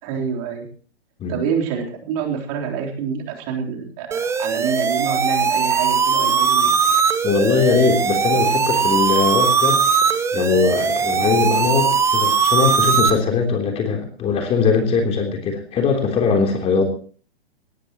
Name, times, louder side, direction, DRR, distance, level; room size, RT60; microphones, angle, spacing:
voice 1, 0.0-0.7 1.3-6.7, right 6 dB, 35° right, 1 dB, 3.8 m, -27 dB
sound 1, 4.1-13.1, right 6 dB, 10° right, 1.1 m, -19 dB
voice 2, 7.2-9.8 10.3-16.9, left 5 dB, 20° left, 3 dB, 3.4 m, -20 dB
19.5 x 18.5 x 3.0 m, 0.43 s
figure-of-eight pair, 115°, 31 cm